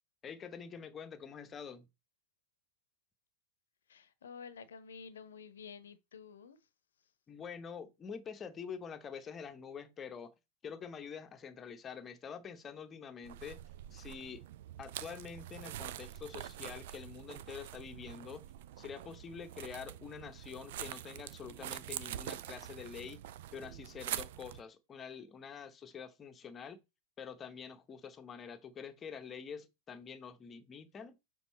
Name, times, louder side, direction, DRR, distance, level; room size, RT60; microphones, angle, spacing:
voice 1, 0.2-1.8 7.3-10.3 10.6-13.6 13.9-14.4 14.8-18.4 18.8-23.3 23.5-26.8 27.2-31.2, left 6 dB, 25° left, 0.9 m, -46 dB
voice 2, 3.9-6.7 7.0-7.1, left 6 dB, 65° left, 0.8 m, -51 dB
sound 1, 13.2-24.6, right 12 dB, 55° right, 0.4 m, -45 dB
7.2 x 3.8 x 4.2 m
figure-of-eight pair, 90°, 0 cm